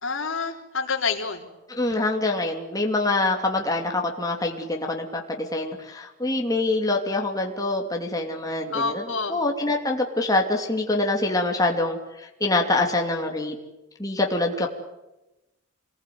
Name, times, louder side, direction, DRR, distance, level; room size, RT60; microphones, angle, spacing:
voice 1, 0.0-1.5 8.7-9.4, left 4 dB, 70° left, 4 dB, 3.7 m, -28 dB
voice 2, 1.7-13.6 14.0-14.7, left 2 dB, 20° left, 1 dB, 2.8 m, -25 dB
28.0 x 21.0 x 9.5 m, 0.97 s
head